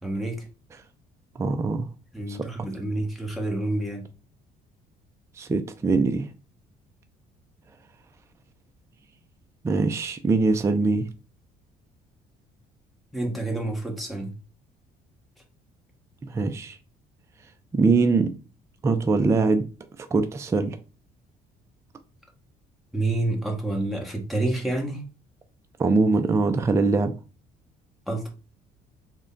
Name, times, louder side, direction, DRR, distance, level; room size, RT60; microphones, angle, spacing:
voice 1, 0.0-0.4 2.1-4.0 13.1-14.3 22.9-25.0 28.1-28.3, right 2 dB, ahead, 1.1 m, -28 dB
voice 2, 1.4-1.9 2.3-2.4 5.4-6.3 9.6-11.1 16.3-16.8 17.7-18.3 18.8-19.7 20.1-20.8 25.8-27.1, right 3 dB, 15° right, 0.4 m, -22 dB
3.6 x 2.2 x 3.7 m
cardioid pair, 110°, 17 cm